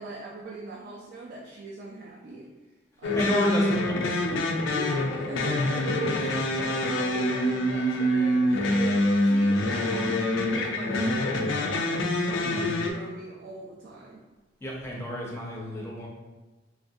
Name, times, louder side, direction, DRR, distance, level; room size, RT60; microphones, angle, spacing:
voice 1, 0.0-2.5 3.0-11.9 12.3-14.2, right 2 dB, 50° right, -2 dB, 0.3 m, -39 dB
sound 1, 3.0-12.9, left 1 dB, 80° left, 0.4 m, -25 dB
voice 2, 3.1-3.8 8.7-8.8 12.4-12.8 14.6-16.1, left 1 dB, 15° left, -3 dB, 0.5 m, -31 dB
3.0 x 2.4 x 2.6 m, 1.1 s
head